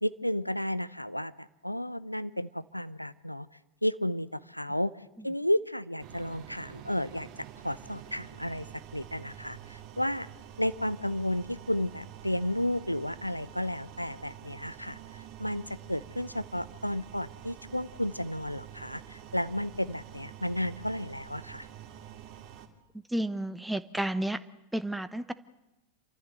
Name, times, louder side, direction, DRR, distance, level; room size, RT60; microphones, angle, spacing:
voice 1, 0.0-3.5 3.8-4.9 5.2-7.3 7.6-8.7 8.9-10.3 10.6-21.7, left 1 dB, 90° left, 16 dB, 0.7 m, -32 dB
sound 1, 6.0-22.7, right 10 dB, 40° right, 2.5 m, -48 dB
voice 2, 23.1-24.4 24.7-25.3, right 1 dB, 5° right, 13 dB, 0.9 m, -31 dB
28.0 x 14.0 x 7.7 m, 0.98 s
figure-of-eight pair, 90°, 0 cm